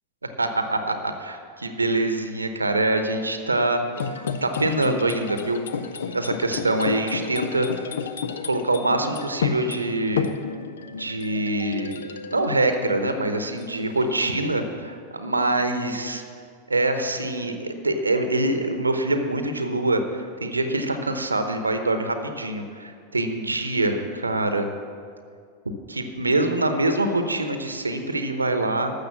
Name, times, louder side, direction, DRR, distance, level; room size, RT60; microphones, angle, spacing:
voice 1, 1.0-3.8 4.4-5.6 6.1-7.7 8.4-10.3 10.9-11.9 12.3-16.2 16.7-24.7 25.9-28.9, right 2 dB, 80° right, 7 dB, 0.9 m, -24 dB
sound 1, 4.0-13.2 13.6-14.8, left 6 dB, 65° left, 0.6 m, -32 dB
13.0 x 6.7 x 7.2 m, 2.2 s
figure-of-eight pair, 90°, 0 cm